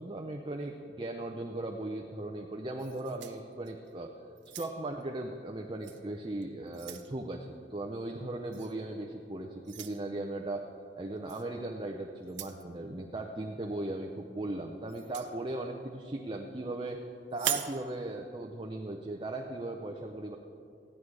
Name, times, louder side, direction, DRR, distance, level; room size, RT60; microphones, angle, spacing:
voice 1, 0.0-4.2 4.6-10.7 11.0-17.0 17.3-20.4, right 2 dB, 25° right, 2 dB, 0.6 m, -38 dB
sound 1, 2.8-3.9 4.4-5.0 5.8-6.0 6.4-7.1 8.5-8.7 9.6-10.0 11.3-11.5 12.2-12.6 14.9-15.3 17.3-17.8, right 11 dB, 90° right, 0.8 m, -39 dB
15.0 x 11.0 x 4.8 m, 2.5 s
head